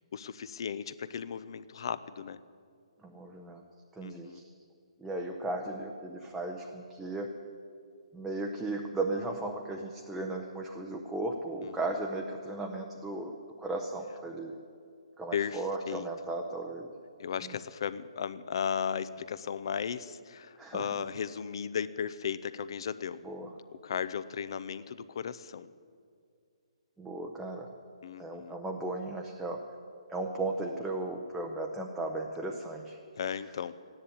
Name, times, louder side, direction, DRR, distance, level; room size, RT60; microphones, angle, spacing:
voice 1, 0.1-2.4 4.0-4.4 11.6-11.7 15.3-16.1 17.2-23.2 23.8-25.7 28.0-28.5 33.2-33.7, left 7 dB, 45° left, 15 dB, 0.6 m, -35 dB
voice 2, 3.0-3.6 3.9-4.4 5.0-7.3 8.1-14.6 15.2-16.9 20.6-20.9 23.2-23.5 27.0-27.7 28.2-29.7 30.1-33.0, right 2 dB, 5° right, -1 dB, 0.6 m, -36 dB
14.5 x 10.5 x 8.5 m, 2.3 s
hypercardioid pair, 165°, 3 cm